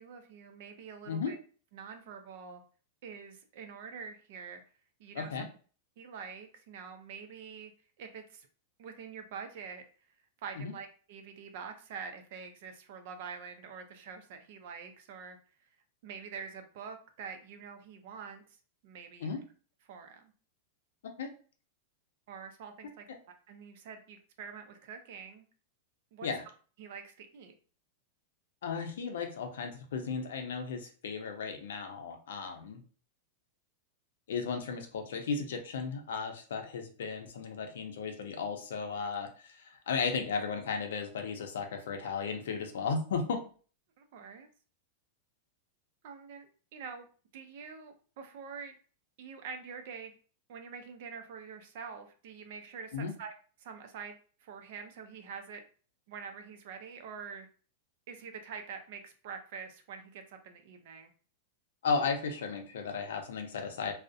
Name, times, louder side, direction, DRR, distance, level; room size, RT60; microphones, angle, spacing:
voice 1, 0.0-1.4 1.7-2.6 3.0-4.6 5.0-5.3 6.0-7.7 8.0-8.5 8.8-9.9 10.4-15.4 16.0-18.4 18.8-19.3 19.9-20.3 22.3-23.1 23.5-25.4 26.1-26.3 26.8-27.5 44.0-44.5 46.0-47.1 47.3-48.7 49.2-50.1 50.5-53.3 53.6-55.6 56.1-57.5 58.1-61.1, right 6 dB, 50° right, 6 dB, 0.4 m, -45 dB
voice 2, 5.1-5.5 10.6-10.7 19.2-19.4 21.2-21.3 26.2-26.4 28.6-32.8 34.3-43.4 52.9-53.1 61.8-63.9, left 5 dB, 80° left, 4 dB, 0.5 m, -35 dB
2.4 x 2.0 x 2.5 m, 0.40 s
supercardioid pair, 170°, 0 cm